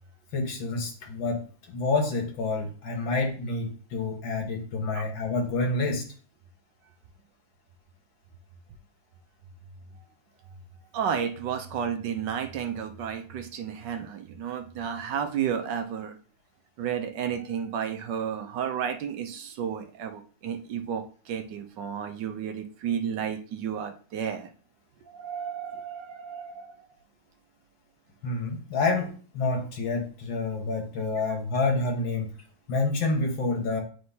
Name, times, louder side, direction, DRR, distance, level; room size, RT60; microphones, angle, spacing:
voice 1, 0.3-6.1 28.2-32.3 32.7-33.8, left 3 dB, 75° left, 2 dB, 2.1 m, -28 dB
voice 2, 10.9-16.2 16.8-24.5 25.1-26.8, right 8 dB, 70° right, 7 dB, 1.2 m, -32 dB
9.4 x 4.3 x 2.8 m, 0.41 s
omnidirectional pair, 2.1 m